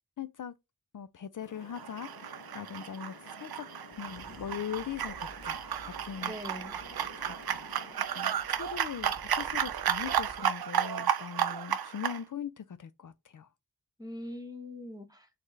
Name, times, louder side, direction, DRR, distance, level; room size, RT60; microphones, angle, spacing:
voice 1, 0.2-0.5 0.9-3.1 3.4-3.7 4.0-5.6 6.0-6.3 7.2-7.8 8.1-13.5, left 8 dB, 60° left, 0.5 m, -40 dB
sound 1, 1.4-8.0, left 4 dB, 85° left, 0.8 m, -53 dB
sound 2, 1.7-12.2, right 9 dB, 85° right, 0.5 m, -33 dB
sound 3, 3.8-10.6, equal, 30° left, 1.4 m, -53 dB
voice 2, 6.2-6.8 14.0-15.4, left 1 dB, 10° right, 1.4 m, -42 dB
4.3 x 3.5 x 3.2 m
wide cardioid pair, 75°, 36 cm